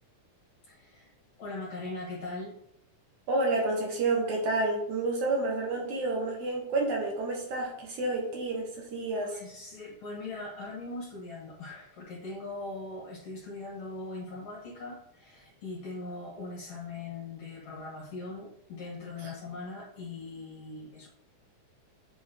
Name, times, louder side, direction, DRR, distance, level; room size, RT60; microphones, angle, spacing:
voice 1, 0.6-1.1 1.4-2.6 9.2-21.1, left 3 dB, 60° left, -4 dB, 2.3 m, -40 dB
voice 2, 3.3-9.4, right 2 dB, 70° right, -1 dB, 2.6 m, -29 dB
8.8 x 3.1 x 3.8 m, 0.74 s
omnidirectional pair, 3.6 m